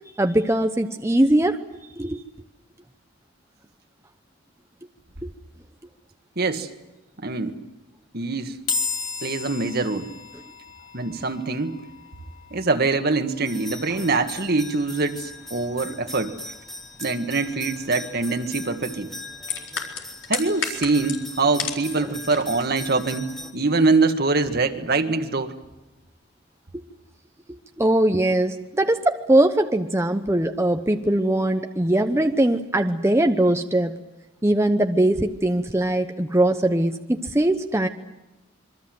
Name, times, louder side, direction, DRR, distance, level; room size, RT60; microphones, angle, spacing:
voice 1, 0.2-1.6 2.0-2.2 27.8-33.9 34.4-37.9, right 1 dB, 15° right, 5 dB, 0.9 m, -21 dB
voice 2, 6.3-6.7 7.2-7.6 8.1-8.6 9.2-10.1 10.9-11.8 12.5-16.3 17.0-19.1 20.3-25.5, right 3 dB, 55° right, 7 dB, 1.8 m, -24 dB
sound 1, 8.7-22.0, left 5 dB, 45° left, 2.4 m, -38 dB
sound 2, 13.5-23.5, left 2 dB, ahead, 1.5 m, -40 dB
sound 3, 19.4-21.9 22.2-22.6 23.0-23.2, left 7 dB, 70° left, 4.3 m, -30 dB
26.5 x 23.5 x 7.9 m, 0.99 s
head